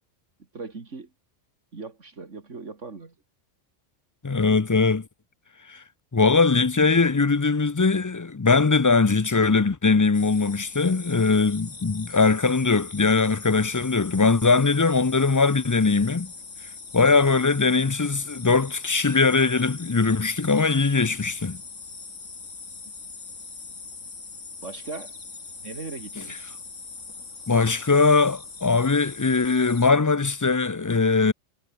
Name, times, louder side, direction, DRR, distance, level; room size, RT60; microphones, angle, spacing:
voice 1, 0.5-1.1 1.7-3.1 24.6-25.1 25.6-26.5, right 4 dB, 75° right, 2.8 m, -38 dB
voice 2, 4.2-5.0 5.7-5.8 6.1-16.3 16.9-21.6 27.5-31.3, left 4 dB, 30° left, 0.3 m, -21 dB
sound 1, 10.1-29.9, left 4 dB, 85° left, 3.1 m, -41 dB
omnidirectional pair, 1.3 m